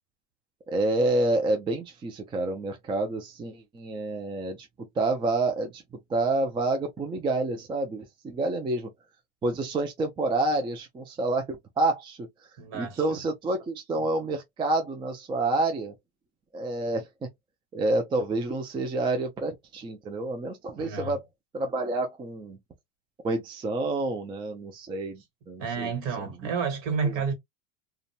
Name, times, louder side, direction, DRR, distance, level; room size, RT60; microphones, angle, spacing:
voice 1, 0.7-8.9 9.4-12.5 12.7-15.9 16.5-17.3 17.7-21.2 21.5-22.6 23.2-25.9 26.2-26.3 27.0-27.2, right 2 dB, 15° right, 0.4 m, -28 dB
voice 2, 12.6-13.0 20.8-21.2 25.6-27.3, right 5 dB, 55° right, 1.6 m, -30 dB
2.5 x 2.3 x 2.7 m
hypercardioid pair, 105°, 37 cm